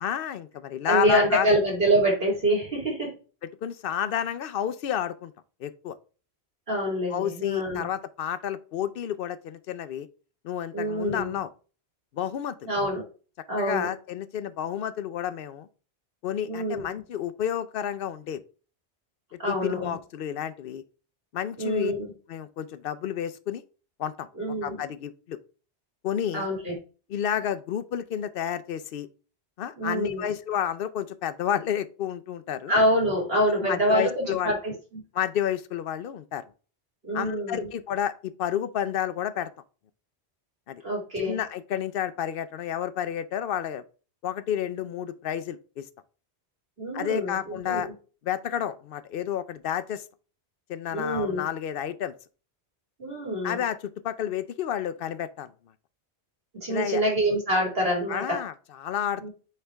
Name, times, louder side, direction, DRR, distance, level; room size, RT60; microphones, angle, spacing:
voice 1, 0.0-1.5 3.6-5.3 5.6-5.9 7.1-10.1 10.4-11.5 12.1-12.7 13.6-15.7 16.2-18.4 19.5-20.8 21.3-21.9 22.3-23.6 24.0-25.4 26.0-26.5 27.1-29.1 29.6-32.7 33.3-34.5 35.1-36.4 37.1-39.5 40.7-40.8 41.2-43.8 44.2-45.8 46.9-47.9 48.2-50.0 50.7-52.1 53.4-55.5 56.7-57.0 58.1-59.2, left 10 dB, 65° left, 0.7 m, -30 dB
voice 2, 0.8-3.1 6.7-7.9 10.7-11.4 12.7-13.0 13.5-13.9 16.5-16.8 19.4-20.0 21.6-22.1 24.4-24.8 26.3-26.7 29.8-30.3 32.7-34.7 37.0-37.7 40.8-41.4 46.8-47.9 50.9-51.4 53.0-53.6 56.5-58.4 59.2-59.3, right 1 dB, 60° right, 3.4 m, -26 dB
8.4 x 3.4 x 3.4 m
omnidirectional pair, 1.1 m